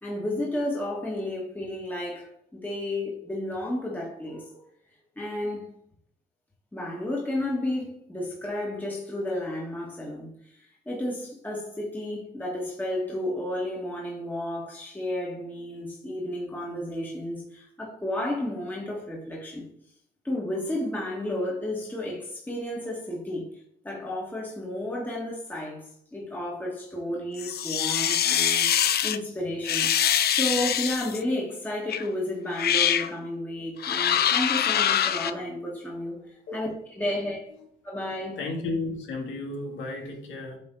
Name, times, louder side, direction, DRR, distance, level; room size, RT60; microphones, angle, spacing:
voice 1, 0.0-4.6 5.1-5.7 6.7-19.6 20.2-23.5 23.8-28.7 29.0-36.2 36.5-36.7 36.9-37.4 37.8-38.4, left 1 dB, 10° left, 1.8 m, -32 dB
sound 1, 27.4-29.2 29.6-31.2 31.9-32.1 32.5-33.1 33.8-35.3, left 10 dB, 55° left, 0.5 m, -24 dB
voice 2, 38.4-40.6, left 2 dB, 75° left, 2.0 m, -33 dB
8.7 x 3.5 x 3.9 m
cardioid pair, 90°, 20 cm